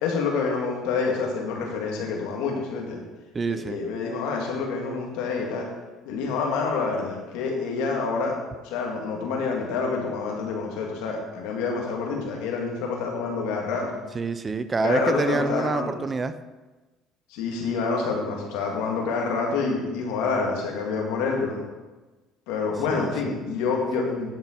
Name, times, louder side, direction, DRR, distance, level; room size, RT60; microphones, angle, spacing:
voice 1, 0.0-3.0 3.5-5.7 6.1-8.4 8.6-13.9 14.8-16.0 17.3-21.6 22.5-24.3, left 4 dB, 85° left, 0 dB, 1.9 m, -27 dB
voice 2, 3.3-3.8 14.1-16.3 22.9-23.3, right 4 dB, 25° right, 11 dB, 0.6 m, -27 dB
10.5 x 5.9 x 4.5 m, 1.2 s
supercardioid pair, 90°, 0 cm